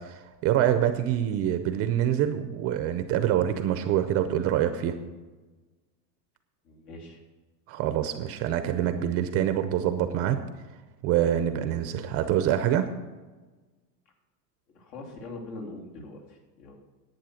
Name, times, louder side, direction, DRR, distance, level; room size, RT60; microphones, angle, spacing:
voice 1, 0.0-4.9 7.7-10.4 11.0-12.9, right 10 dB, 30° right, 9 dB, 0.5 m, -25 dB
voice 2, 6.6-7.2 14.7-16.8, left 2 dB, 70° left, -1 dB, 3.3 m, -42 dB
10.5 x 8.8 x 6.3 m, 1.3 s
supercardioid pair, 150°, 49 cm